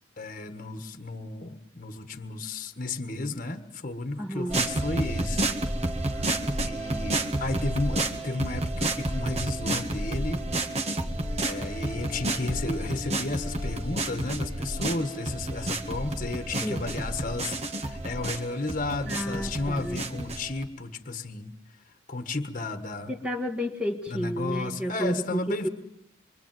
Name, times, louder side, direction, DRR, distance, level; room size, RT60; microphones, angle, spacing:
voice 1, 0.2-5.5 6.1-6.3 6.6-10.4 11.4-21.5 22.1-23.1 24.1-25.7, left 2 dB, 45° left, 8 dB, 1.6 m, -33 dB
voice 2, 4.2-4.6 16.6-16.9 19.1-20.1 23.1-25.7, equal, 5° right, 2 dB, 1.8 m, -31 dB
sound 1, 4.5-20.7, right 1 dB, 35° right, 1.9 m, -30 dB
26.0 x 24.0 x 9.2 m, 0.84 s
head